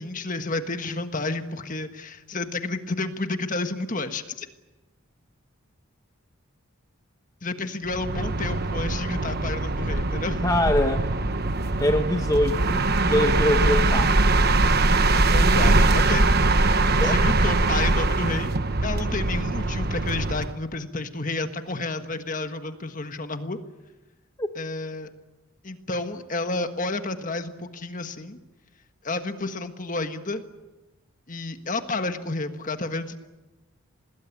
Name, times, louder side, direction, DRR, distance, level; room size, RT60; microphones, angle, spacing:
voice 1, 0.0-4.5 7.4-10.4 15.1-16.3 16.9-18.5 18.8-23.6 24.6-25.1 25.6-28.4 29.0-30.4 31.3-33.2, left 3 dB, 40° left, 8 dB, 1.5 m, -30 dB
sound 1, 7.9-20.6, right 2 dB, 45° right, 1.2 m, -22 dB
voice 2, 10.4-11.1 11.8-14.1 17.0-17.2 24.4-24.5, left 1 dB, 15° left, 5 dB, 1.1 m, -23 dB
26.0 x 20.0 x 8.5 m, 1.1 s
head